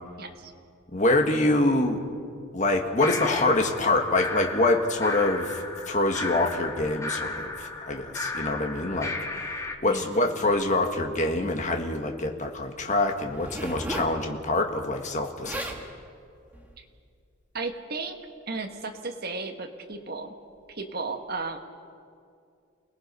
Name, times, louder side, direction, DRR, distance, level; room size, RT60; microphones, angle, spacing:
voice 1, 0.2-0.5 9.9-10.2 16.8-16.9 17.5-18.2 18.5-20.3 20.7-21.6, right 3 dB, 45° right, 4 dB, 1.6 m, -34 dB
voice 2, 0.9-2.0 2.5-5.5 5.9-9.1 9.8-15.6, left 2 dB, 35° left, 4 dB, 1.7 m, -25 dB
sound 1, 3.0-9.8, left 2 dB, 15° left, 1.1 m, -35 dB
Zipper (clothing), 13.3-14.2 15.2-15.3 15.4-15.8 16.5-16.8, right 1 dB, 10° right, 1.7 m, -34 dB
29.0 x 18.5 x 5.5 m, 2.4 s
head